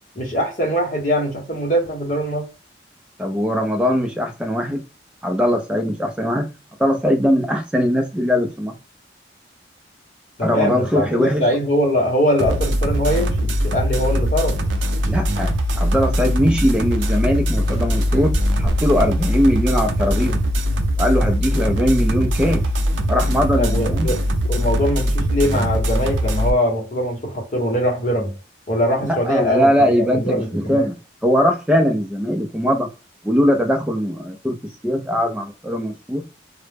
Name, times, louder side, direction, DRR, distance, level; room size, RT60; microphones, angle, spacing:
voice 1, 0.2-2.4 10.4-14.6 23.6-24.2 24.4-28.3 28.7-30.9, equal, 45° left, 0.8 m, -22 dB
voice 2, 3.2-4.8 5.2-6.5 6.8-8.7 10.4-11.4 15.1-20.4 21.0-22.6 23.1-24.1 29.0-30.9 31.2-32.9 33.2-34.6 34.8-36.2, equal, 5° right, 0.3 m, -20 dB
sound 1, 12.4-26.5, equal, 85° right, 0.4 m, -21 dB
sound 2, 14.6-20.9, equal, 20° right, 0.7 m, -32 dB
2.0 x 2.0 x 3.2 m
head